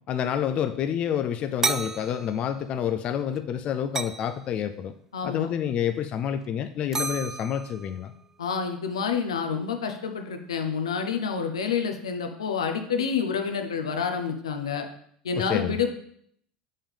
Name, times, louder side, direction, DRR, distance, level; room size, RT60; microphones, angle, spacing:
voice 1, 0.1-4.9 5.2-8.1 15.4-15.8, left 9 dB, 45° left, 8 dB, 0.4 m, -28 dB
sound 1, 1.6-2.9 3.1-3.4 3.9-4.4 6.3-6.5 6.9-8.1, right 4 dB, 20° right, 0.4 m, -32 dB
voice 2, 5.1-5.5 8.4-14.8 15.2-15.9, left 6 dB, 85° left, 5 dB, 0.8 m, -28 dB
7.1 x 5.5 x 3.5 m, 0.66 s
hypercardioid pair, 80°, 3 cm